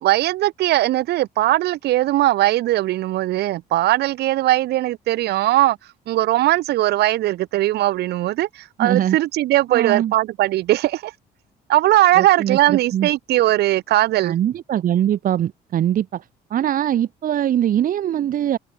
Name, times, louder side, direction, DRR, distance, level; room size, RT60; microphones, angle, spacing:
voice 1, 0.0-5.8 6.1-11.1 11.7-14.4, right 15 dB, 75° right, 3.3 m, -19 dB
voice 2, 8.8-9.2 9.7-10.1 12.2-13.1 14.2-16.2 16.5-18.6, right 10 dB, 55° right, 2.0 m, -22 dB
open air
cardioid pair, 110°, 17 cm